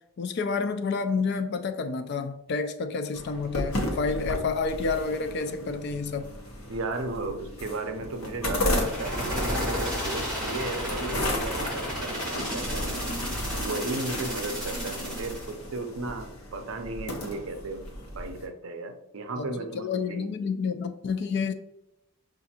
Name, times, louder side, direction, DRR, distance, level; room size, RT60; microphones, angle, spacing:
voice 1, 0.2-6.3 19.4-21.5, left 4 dB, 50° left, 0.3 m, -29 dB
sound 1, 3.1-18.5, left 1 dB, 75° left, 0.9 m, -34 dB
voice 2, 6.7-13.1 13.6-17.8 18.1-20.3, right 2 dB, 65° right, 0.5 m, -35 dB
sound 2, 8.7-15.5, equal, 5° left, 1.3 m, -33 dB
5.7 x 2.5 x 2.8 m
head